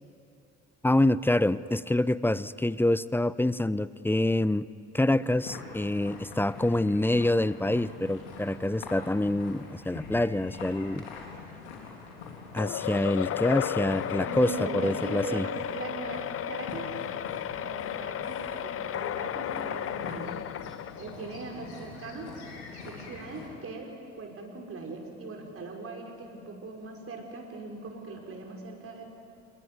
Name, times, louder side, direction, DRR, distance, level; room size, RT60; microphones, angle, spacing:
voice 1, 0.8-4.6 4.9-11.1 12.5-15.5, left 1 dB, 5° left, 18 dB, 0.7 m, -26 dB
sound 1, 5.2-23.5, left 4 dB, 80° left, 3.7 m, -44 dB
sound 2, 12.5-21.3, left 11 dB, 40° left, 0.9 m, -34 dB
voice 2, 14.2-17.0 17.5-20.3 20.9-22.4 22.8-29.1, right 3 dB, 40° right, 1 dB, 6.0 m, -40 dB
27.5 x 22.0 x 9.7 m, 2.7 s
figure-of-eight pair, 50°, 33 cm